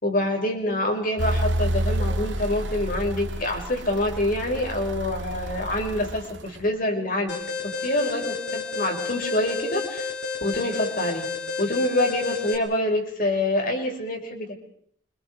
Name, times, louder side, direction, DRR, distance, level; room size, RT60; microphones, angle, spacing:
voice 1, 0.0-7.4 7.6-10.1 10.4-11.2 11.6-14.5, left 1 dB, 50° left, 2 dB, 5.8 m, -26 dB
sound 1, 1.2-6.7, right 1 dB, 85° right, 1.9 m, -29 dB
Alarm, 7.3-12.6, left 4 dB, 65° left, 6.0 m, -31 dB
30.0 x 26.0 x 4.9 m, 0.64 s
head